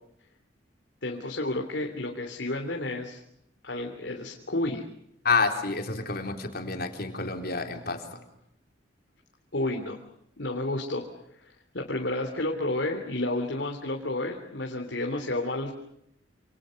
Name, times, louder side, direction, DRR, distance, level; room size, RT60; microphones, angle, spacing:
voice 1, 1.0-3.2 3.6-4.8 9.5-10.0 10.4-11.1 11.4-15.7, left 2 dB, 75° left, 2 dB, 3.2 m, -31 dB
voice 2, 5.2-8.2, left 4 dB, 55° left, 4 dB, 4.0 m, -28 dB
28.0 x 28.0 x 6.5 m, 0.76 s
head